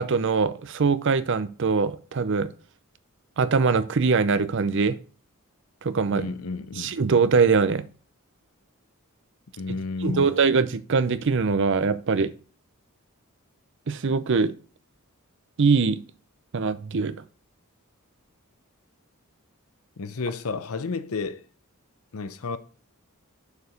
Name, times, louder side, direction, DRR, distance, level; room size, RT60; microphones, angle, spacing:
voice 1, 0.0-2.5 3.4-5.0 5.8-6.3 6.8-7.8 10.0-12.3 13.9-14.5 15.6-16.0 16.5-17.2, right 4 dB, 55° right, 0.6 m, -22 dB
voice 2, 6.1-7.0 9.6-10.3 20.0-21.4 22.1-22.6, left 4 dB, 80° left, 0.7 m, -31 dB
6.7 x 4.6 x 5.1 m
head